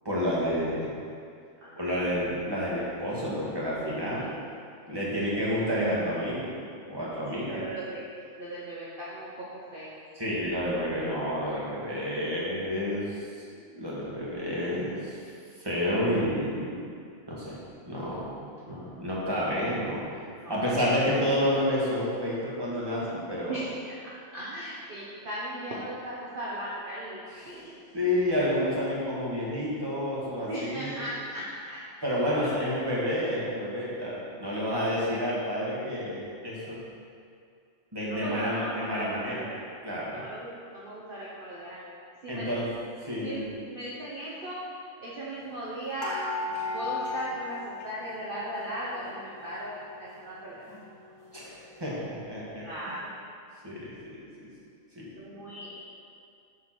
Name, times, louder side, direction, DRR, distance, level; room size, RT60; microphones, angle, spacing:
voice 1, 0.1-0.9 1.8-4.3 4.9-6.5 6.9-7.6 10.1-13.3 13.7-15.2 15.6-16.9 17.3-17.6 17.8-20.0 20.5-23.6 27.3-27.6 27.9-31.0 32.0-36.8 37.9-39.5 39.8-40.2 42.3-42.7 43.0-43.5 51.3-52.7 53.6-53.9 54.4-54.5 55.0-55.1, equal, 15° right, -7 dB, 1.9 m, -29 dB
voice 2, 1.6-2.2 3.8-4.5 7.3-8.0 8.4-9.5 9.7-9.9 20.4-20.6 23.4-23.9 24.3-27.2 27.5-27.8 30.5-31.8 32.6-32.7 35.0-35.1 38.1-39.7 40.1-41.8 42.2-42.6 43.2-44.6 45.0-46.2 46.7-50.6 52.6-53.1 55.2-55.8, right 1 dB, 40° right, -7 dB, 1.3 m, -38 dB
sound 1, 46.0-48.6 48.8-49.8 50.3-50.4 50.7-50.8, left 3 dB, 65° left, 1.7 m, -35 dB
7.1 x 5.6 x 6.1 m, 2.3 s
omnidirectional pair, 1.4 m